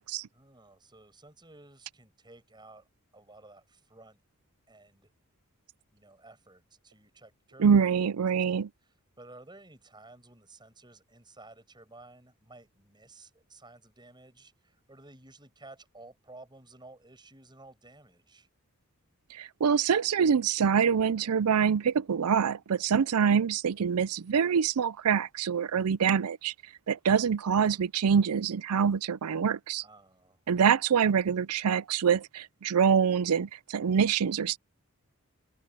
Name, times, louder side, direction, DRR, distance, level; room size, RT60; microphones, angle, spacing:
voice 1, 0.3-2.9 3.1-4.2 4.7-5.1 5.9-8.0 8.8-18.5 29.8-30.4, right 2 dB, 20° right, 7.9 m, -54 dB
voice 2, 7.6-8.7 19.3-26.5 26.9-29.8 30.5-34.6, right 7 dB, 85° right, 0.5 m, -25 dB
head